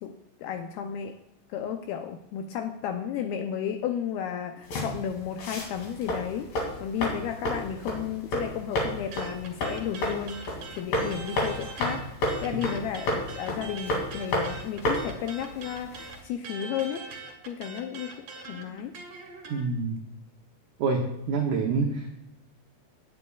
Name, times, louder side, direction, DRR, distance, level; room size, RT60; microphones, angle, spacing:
voice 1, 0.0-1.2 1.5-12.0 12.4-17.1 17.5-18.9, left 9 dB, 80° left, 6 dB, 2.3 m, -33 dB
sound 1, 4.6-16.2, left 1 dB, 60° left, 4.1 m, -32 dB
sound 2, 9.1-12.0 12.3-19.6, right 4 dB, 50° right, 1.9 m, -42 dB
voice 2, 19.5-20.0 20.8-22.2, right 4 dB, 85° right, 2 dB, 1.8 m, -27 dB
16.5 x 9.5 x 2.4 m, 0.89 s
omnidirectional pair, 4.9 m